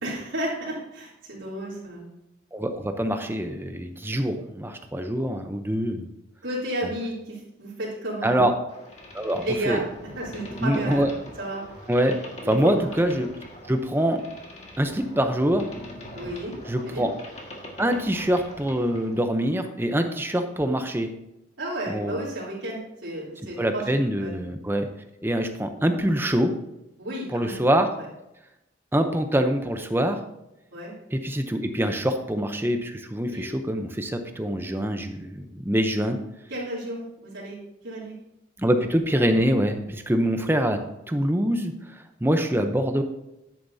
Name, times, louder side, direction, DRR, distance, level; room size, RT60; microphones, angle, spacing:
voice 1, 0.0-2.0 6.4-8.4 9.4-9.9 10.1-11.6 12.4-12.7 16.1-16.6 16.8-17.1 21.6-23.9 24.2-24.3 27.0-27.6 28.0-28.1 30.7-30.9 33.3-33.5 36.5-37.6 37.8-38.1, right 1 dB, 80° right, -9 dB, 3.3 m, -32 dB
voice 2, 2.5-6.1 8.2-8.5 9.1-9.8 10.6-11.1 11.9-12.2 12.4-13.3 13.7-14.2 14.8-15.7 16.7-17.1 17.8-21.1 21.9-22.2 23.6-24.9 25.2-26.5 27.3-27.9 28.9-30.2 31.1-36.2 38.6-40.8 41.1-43.0, equal, 10° right, 6 dB, 0.7 m, -24 dB
Boat Water vehicle, 8.7-19.2, left 1 dB, 35° left, 1.7 m, -42 dB
10.0 x 9.1 x 2.7 m, 0.89 s
head